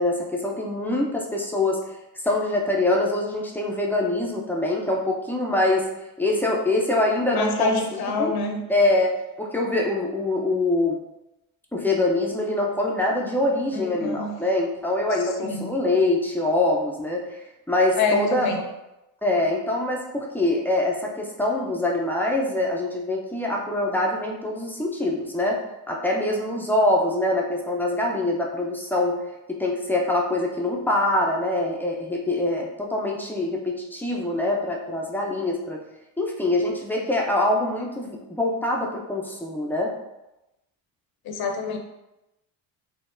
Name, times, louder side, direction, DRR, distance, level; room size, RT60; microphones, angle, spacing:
voice 1, 0.0-1.8 2.2-5.9 6.2-8.3 8.7-11.0 11.7-18.5 19.2-25.6 25.9-29.2 29.5-35.8 36.2-39.9, left 2 dB, 5° left, -2 dB, 0.4 m, -24 dB
voice 2, 7.3-8.6 13.7-14.4 15.1-15.7 17.9-18.6 41.2-41.8, left 4 dB, 50° left, 3 dB, 0.7 m, -26 dB
3.7 x 2.0 x 2.5 m, 0.93 s
supercardioid pair, 80°, 49 cm